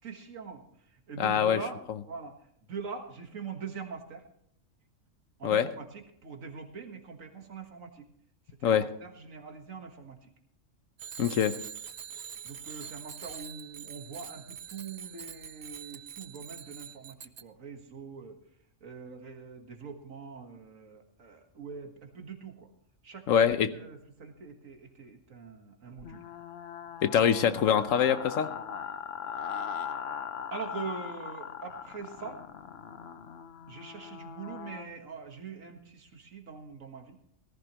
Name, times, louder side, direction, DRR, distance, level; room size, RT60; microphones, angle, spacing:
voice 1, 0.0-4.2 5.4-8.1 8.5-10.3 12.4-18.4 18.8-22.7 23.0-23.3 23.7-26.2 27.1-27.2 30.5-32.4 33.7-37.2, right 5 dB, 80° right, 4 dB, 1.9 m, -43 dB
voice 2, 1.2-1.6 5.4-5.7 8.6-8.8 11.2-11.5 23.3-23.7 27.0-28.5, left 8 dB, 80° left, 12 dB, 1.2 m, -24 dB
Bicycle bell, 11.0-17.4, right 8 dB, 50° right, 0.5 m, -44 dB
sound 1, 26.0-34.9, left 7 dB, 55° left, 1.0 m, -40 dB
18.0 x 14.5 x 3.0 m, 0.68 s
omnidirectional pair, 1.3 m